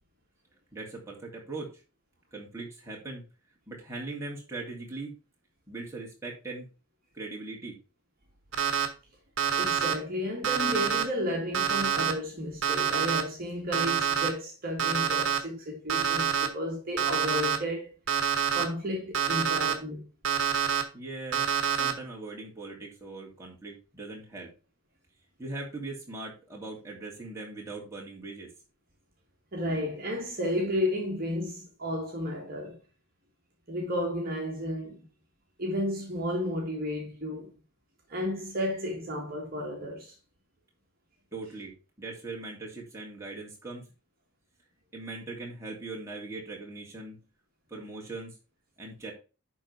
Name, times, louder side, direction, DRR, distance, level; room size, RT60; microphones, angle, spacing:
voice 1, 0.7-1.7 2.3-3.2 3.7-5.1 5.7-6.7 7.1-7.8 20.9-21.4 21.8-24.5 25.4-28.5 41.3-41.7 42.0-43.8 44.9-47.2 47.7-48.3 48.8-49.1, right 3 dB, 10° right, 2.7 m, -40 dB
Alarm, 8.5-8.9 9.4-9.9 10.4-11.0 11.5-12.1 12.6-13.2 13.7-14.3 14.8-15.4 15.9-16.5 17.0-17.6 18.1-18.6 19.1-19.7 20.2-20.8 21.3-21.9, right 8 dB, 60° right, 1.4 m, -26 dB
voice 2, 9.6-17.9 18.5-20.0 29.5-32.8 33.7-35.1 35.6-37.6 38.1-40.1, left 1 dB, 40° right, 1.9 m, -32 dB
11.0 x 3.9 x 4.7 m
head